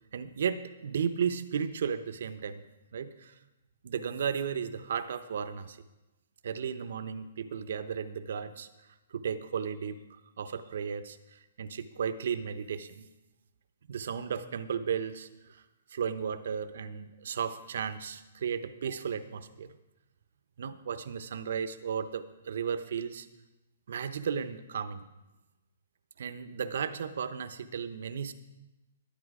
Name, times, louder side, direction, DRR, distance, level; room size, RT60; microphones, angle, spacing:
voice 1, 0.1-2.6 2.9-3.3 3.8-5.8 6.4-8.7 9.1-10.0 10.4-13.1 13.9-15.6 15.9-19.7 20.6-23.3 23.9-25.0 26.2-28.3, right 7 dB, 65° right, 11 dB, 0.8 m, -34 dB
11.0 x 10.5 x 4.9 m, 1.0 s
hypercardioid pair, 155°, 0 cm